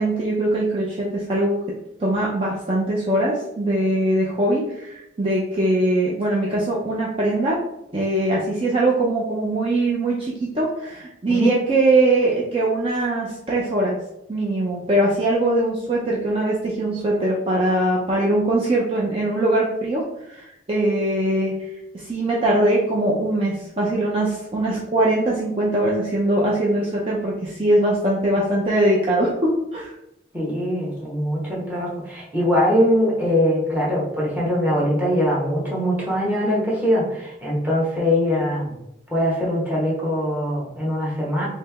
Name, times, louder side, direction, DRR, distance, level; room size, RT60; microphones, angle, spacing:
voice 1, 0.0-1.6 2.0-7.6 7.9-14.0 14.3-20.0 20.3-21.5 21.9-29.9, right 1 dB, 30° right, -5 dB, 0.5 m, -21 dB
voice 2, 30.3-38.8 39.1-41.5, equal, 10° right, -5 dB, 1.1 m, -22 dB
3.2 x 2.8 x 3.4 m, 0.85 s
head